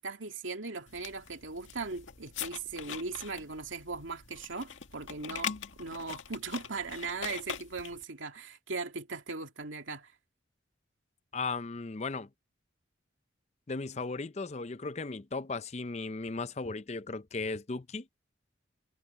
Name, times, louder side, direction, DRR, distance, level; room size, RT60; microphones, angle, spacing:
voice 1, 0.0-10.1, right 4 dB, 90° right, 2.5 m, -39 dB
sound 1, 0.9-8.0, left 7 dB, 85° left, 2.0 m, -42 dB
voice 2, 11.3-12.3 13.7-18.1, left 3 dB, 35° left, 0.6 m, -36 dB
head